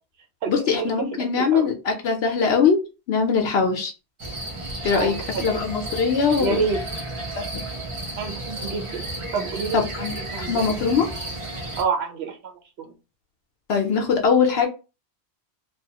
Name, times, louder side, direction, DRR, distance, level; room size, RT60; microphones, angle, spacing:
voice 1, 0.5-2.8 3.1-3.9 4.8-6.6 7.4-7.6 9.7-11.1 13.7-14.7, left 5 dB, 70° left, 2 dB, 0.8 m, -22 dB
voice 2, 1.4-1.7 4.9-5.4 6.4-6.8 8.2-9.0 9.3-10.0 10.3-10.7 11.8-12.4 12.8-12.9, right 5 dB, 70° right, 3 dB, 0.9 m, -27 dB
sound 1, 4.2-11.8, right 1 dB, 40° right, 0.5 m, -33 dB
2.4 x 2.3 x 2.7 m, 0.31 s
omnidirectional pair, 1.1 m